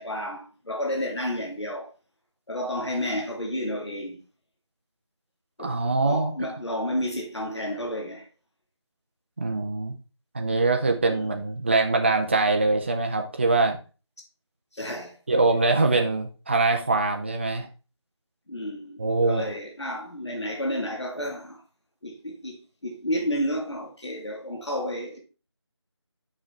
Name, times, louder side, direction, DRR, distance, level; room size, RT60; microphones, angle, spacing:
voice 1, 0.0-1.9 2.5-4.2 5.6-5.8 6.0-8.2 11.1-11.4 14.7-15.2 18.5-21.6 22.0-25.2, equal, 70° left, 2.5 m, -31 dB
voice 2, 5.6-6.3 9.4-9.9 10.3-13.8 15.3-17.7 19.0-19.4, right 3 dB, 25° right, 0.6 m, -23 dB
6.5 x 5.1 x 4.3 m
figure-of-eight pair, 165°, 15 cm